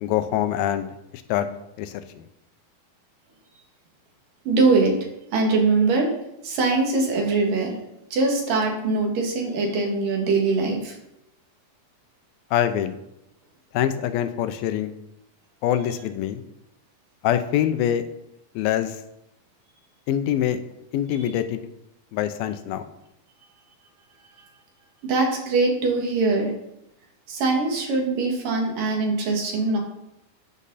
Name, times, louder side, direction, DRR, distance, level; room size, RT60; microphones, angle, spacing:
voice 1, 0.0-0.9 1.3-1.5 1.8-2.3 12.5-13.0 13.7-14.9 15.6-16.4 17.2-18.1 18.6-19.0 20.1-20.6 20.9-21.6 22.1-22.8, left 11 dB, 80° left, 10 dB, 2.5 m, -24 dB
voice 2, 4.5-4.9 5.3-6.1 6.4-7.8 8.1-11.0 25.0-26.5 27.3-29.8, right 3 dB, 65° right, 1 dB, 3.8 m, -22 dB
14.0 x 8.7 x 4.1 m, 0.84 s
omnidirectional pair, 4.2 m